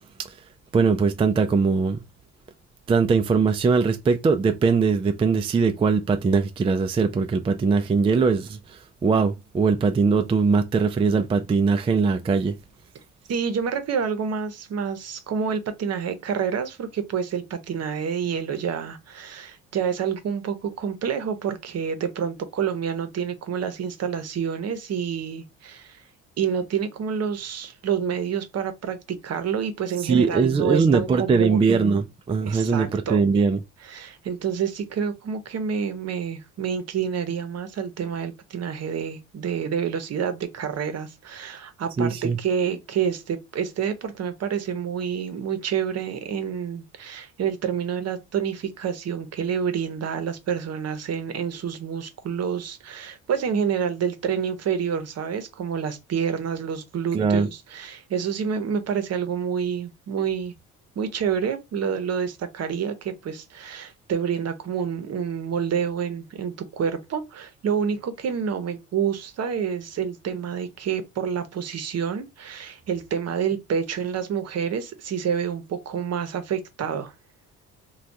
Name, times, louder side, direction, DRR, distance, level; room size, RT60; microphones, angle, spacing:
voice 1, 0.7-2.0 2.9-12.5 30.0-33.6 42.0-42.4 57.1-57.5, right 5 dB, 20° right, 0.3 m, -21 dB
voice 2, 13.3-26.0 26.4-31.6 32.4-33.2 33.8-60.5 61.0-77.1, right 7 dB, 50° right, 0.8 m, -28 dB
3.3 x 2.3 x 2.6 m
supercardioid pair, 75°, 33 cm